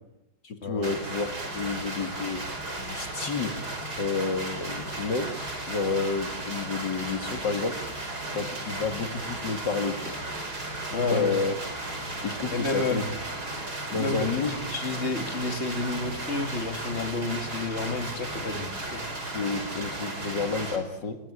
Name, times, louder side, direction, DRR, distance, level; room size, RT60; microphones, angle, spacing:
voice 1, 0.4-1.3 1.5-2.4 2.8-3.5 4.0-5.4 5.7-7.8 8.3-10.2 11.1-11.5 12.2-13.1 13.9-14.6 19.3-21.2, left 4 dB, 60° left, 7 dB, 2.7 m, -30 dB
sound 1, 0.8-20.8, right 2 dB, 50° right, 5.4 m, -35 dB
voice 2, 10.9-11.4 12.5-13.0 13.9-14.4 14.7-19.0, left 3 dB, 30° left, 5 dB, 3.1 m, -30 dB
28.0 x 22.0 x 8.7 m, 0.83 s
omnidirectional pair, 2.2 m